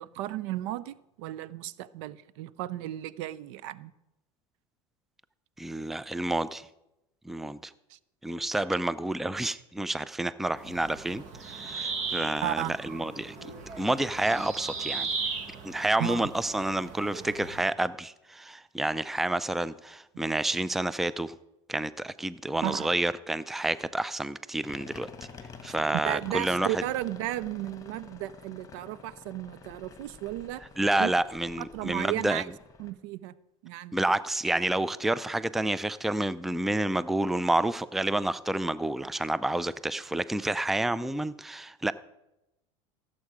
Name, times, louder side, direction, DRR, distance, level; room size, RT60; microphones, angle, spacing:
voice 1, 0.0-3.9 7.9-8.0 12.4-12.7 16.0-16.3 22.6-22.9 25.7-25.8 26.1-30.6 31.0-31.1 31.6-32.5 32.8-33.3 33.6-34.0, right 14 dB, 65° right, 0.5 m, -34 dB
voice 2, 5.6-6.7 7.2-7.7 8.2-13.5 13.8-15.1 15.6-21.3 21.7-25.1 25.6-26.8 30.8-32.4 33.9-41.9, right 1 dB, ahead, 0.4 m, -29 dB
sound 1, 10.6-17.6, right 4 dB, 50° right, 2.0 m, -37 dB
sound 2, 24.6-32.9, left 5 dB, 20° left, 1.6 m, -48 dB
16.0 x 7.5 x 4.9 m
hypercardioid pair, 95°, 16 cm